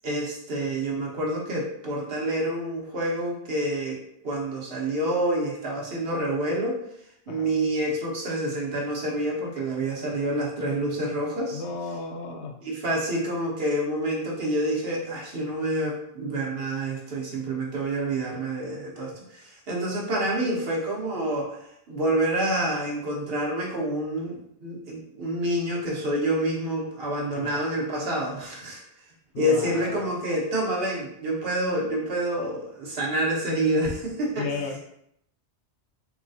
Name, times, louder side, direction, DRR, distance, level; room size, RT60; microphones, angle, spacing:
voice 1, 0.0-4.0 4.2-6.8 7.3-11.6 12.6-21.6 21.9-28.8 29.4-34.5, right 1 dB, 60° right, -2 dB, 1.1 m, -28 dB
voice 2, 11.5-12.5 27.3-27.6 29.3-30.1 34.4-34.8, left 3 dB, 80° left, 3 dB, 0.9 m, -34 dB
3.9 x 2.9 x 2.7 m, 0.73 s
omnidirectional pair, 1.1 m